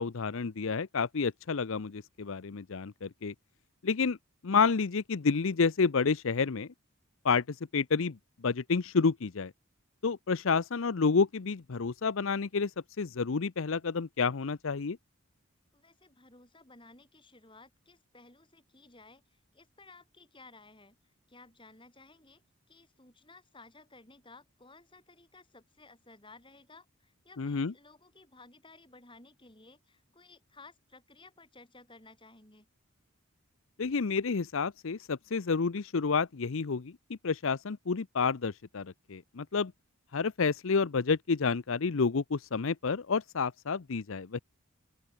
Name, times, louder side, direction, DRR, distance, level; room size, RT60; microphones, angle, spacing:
voice 1, 0.0-3.3 3.8-4.2 4.4-6.7 7.2-8.2 8.4-9.5 10.0-15.0 27.4-27.7 33.8-39.7 40.1-44.4, left 5 dB, 65° left, 0.6 m, -29 dB
voice 2, 15.7-21.0 21.3-32.7, left 3 dB, 20° left, 7.7 m, -56 dB
open air
head